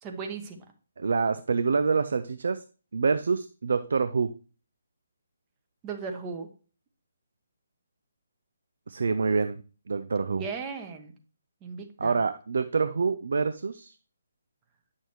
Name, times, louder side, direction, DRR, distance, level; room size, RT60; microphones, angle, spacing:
voice 1, 0.0-0.6 5.8-6.5 10.4-11.2 11.6-12.2, right 5 dB, 20° right, 4 dB, 1.0 m, -36 dB
voice 2, 1.0-2.6 2.9-4.3 8.9-9.6 9.9-10.4 12.0-13.9, right 5 dB, 60° right, 11 dB, 0.4 m, -26 dB
9.3 x 6.2 x 3.1 m, 0.36 s
figure-of-eight pair, 140°, 0 cm